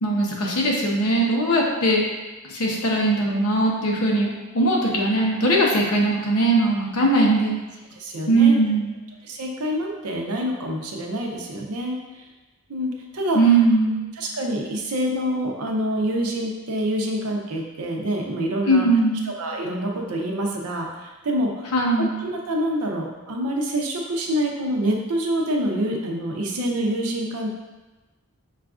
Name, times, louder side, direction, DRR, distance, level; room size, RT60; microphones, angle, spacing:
voice 1, 0.0-2.1 2.5-7.6 8.3-9.0 13.3-14.0 18.6-19.2 21.7-22.1, right 2 dB, 75° left, -2 dB, 0.7 m, -20 dB
voice 2, 8.0-8.6 9.2-12.2 12.7-13.4 14.2-18.9 19.4-21.7 22.2-27.5, equal, 85° right, 1 dB, 0.6 m, -26 dB
5.6 x 2.4 x 2.4 m, 1.2 s
head